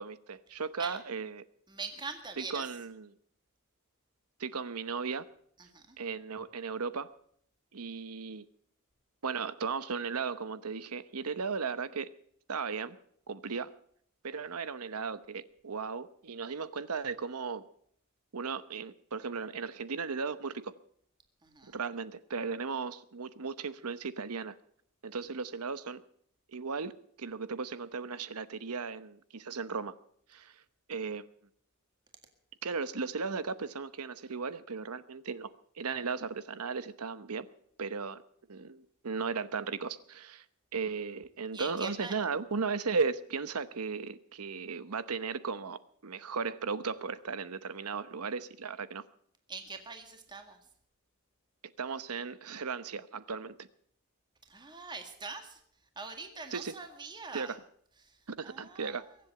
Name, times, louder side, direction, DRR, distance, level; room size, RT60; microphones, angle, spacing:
voice 1, 0.0-1.4 2.4-3.1 4.4-5.2 6.0-7.1 7.7-8.4 9.2-12.1 12.5-13.0 13.3-13.7 14.2-17.6 18.3-20.7 21.6-24.6 25.0-26.0 26.5-26.9 27.2-30.0 30.3-30.6 30.9-31.3 32.6-35.5 35.8-37.5 37.8-38.2 38.5-40.4 40.7-49.0 51.8-53.7 56.5-56.7 57.3-57.6 58.3-59.0, right 5 dB, 80° right, 14 dB, 0.9 m, -36 dB
voice 2, 0.5-1.0 1.7-2.7 5.6-6.0 21.4-21.8 41.5-42.1 49.5-50.6 54.5-55.6 56.0-57.6 58.0-59.1, right 4 dB, 20° right, 5 dB, 1.9 m, -43 dB
22.5 x 7.9 x 7.7 m, 0.64 s
head